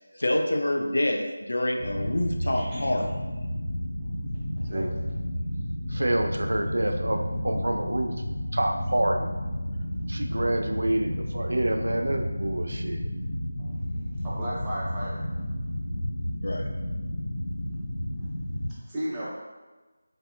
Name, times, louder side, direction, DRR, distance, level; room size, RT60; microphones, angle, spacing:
voice 1, 0.2-3.1 6.0-6.1 16.4-16.7, left 1 dB, 70° left, 3 dB, 0.4 m, -27 dB
sound 1, 1.8-18.7, equal, 35° left, 0.7 m, -32 dB
voice 2, 2.4-2.9 4.6-4.8 13.6-13.7 14.2-15.2 18.9-19.3, equal, 15° right, -9 dB, 0.7 m, -35 dB
voice 3, 5.9-8.1 8.5-9.3 10.1-13.0 19.1-19.3, right 1 dB, 70° right, 5 dB, 0.3 m, -27 dB
3.9 x 2.7 x 2.4 m, 1.2 s
figure-of-eight pair, 165°, 0 cm